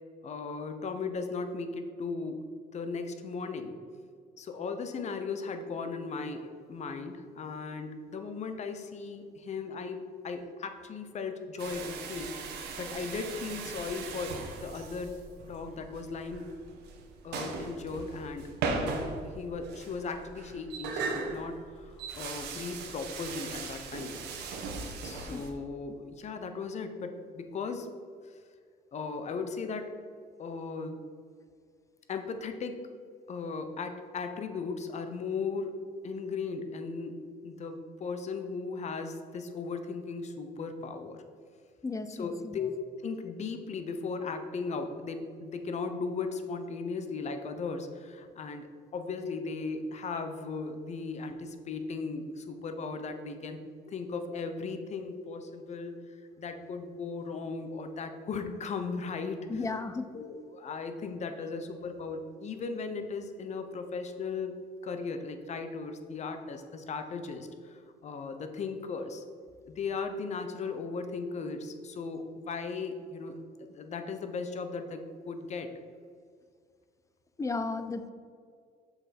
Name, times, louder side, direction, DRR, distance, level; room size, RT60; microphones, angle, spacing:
voice 1, 0.2-2.4 2.7-3.8 4.4-10.0 10.2-15.1 15.4-16.5 17.2-24.2 25.0-27.9 28.2-28.4 28.9-29.9 30.4-31.0 32.1-32.8 33.3-35.8 36.0-37.2 37.4-41.2 42.1-42.7 43.0-48.7 48.9-53.6 53.9-59.6 60.1-64.6 64.8-69.2 69.7-75.7, left 4 dB, 40° left, 7 dB, 0.9 m, -37 dB
sound 1, 11.6-25.5, right 4 dB, 80° right, 1.2 m, -38 dB
voice 2, 41.8-42.6 59.5-60.1 77.4-78.1, left 3 dB, 20° left, 10 dB, 0.5 m, -34 dB
7.0 x 5.8 x 4.3 m, 2.1 s
cardioid pair, 110°, 17 cm